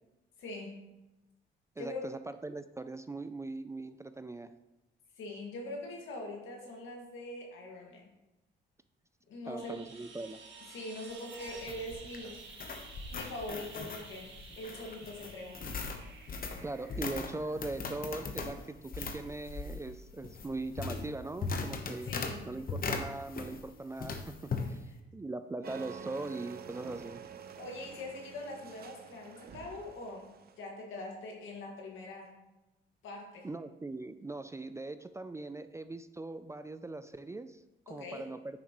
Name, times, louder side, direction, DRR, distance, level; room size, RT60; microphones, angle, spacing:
voice 1, 0.4-0.8 1.8-2.1 5.2-8.1 9.3-9.8 10.7-12.4 13.1-15.6 22.0-22.5 27.6-30.3 30.6-32.3 33.0-33.5 37.9-38.3, left 2 dB, 80° left, 0 dB, 2.0 m, -43 dB
voice 2, 1.8-4.5 9.5-10.4 16.5-22.1 22.5-27.2 33.4-38.6, right 2 dB, 15° right, 11 dB, 0.3 m, -40 dB
sound 1, 9.6-18.3 20.6-20.7, right 4 dB, 70° right, 1.6 m, -52 dB
sound 2, 11.1-23.7 24.0-24.7, left 4 dB, 45° left, 1.0 m, -39 dB
sound 3, 25.6-30.6, right 7 dB, 50° right, 0.7 m, -48 dB
9.4 x 6.3 x 3.1 m, 0.99 s
cardioid pair, 90°, 20 cm